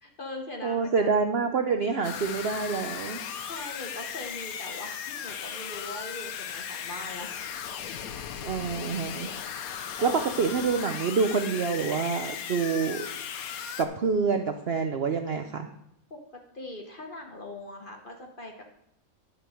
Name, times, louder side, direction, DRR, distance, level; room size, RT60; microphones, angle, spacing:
voice 1, 0.0-1.1 3.4-8.1 10.0-10.3 10.9-11.0 16.1-16.2 16.5-18.6, left 1 dB, 35° left, 3 dB, 1.0 m, -41 dB
voice 2, 0.6-3.2 8.4-9.3 10.0-13.1 13.8-15.7, right 5 dB, 60° right, 6 dB, 0.6 m, -27 dB
sound 1, 2.0-13.8, left 8 dB, 65° left, 1.1 m, -37 dB
11.0 x 5.3 x 6.3 m, 0.77 s
omnidirectional pair, 1.8 m